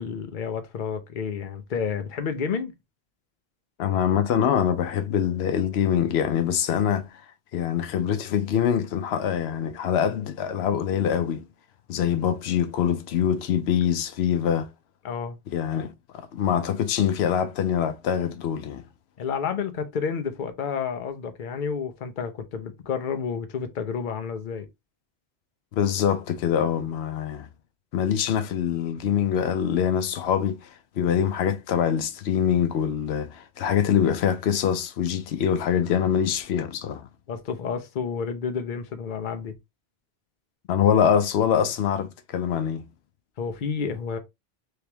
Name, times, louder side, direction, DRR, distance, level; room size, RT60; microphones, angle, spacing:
voice 1, 0.0-2.7 15.0-15.4 19.2-24.7 37.3-39.6 43.4-44.2, left 6 dB, 55° left, 0.8 m, -30 dB
voice 2, 3.8-7.2 7.5-11.5 11.9-14.7 15.5-18.8 25.7-27.5 27.9-37.1 40.7-42.9, left 8 dB, 90° left, 0.8 m, -24 dB
3.3 x 3.0 x 3.3 m
omnidirectional pair, 1.0 m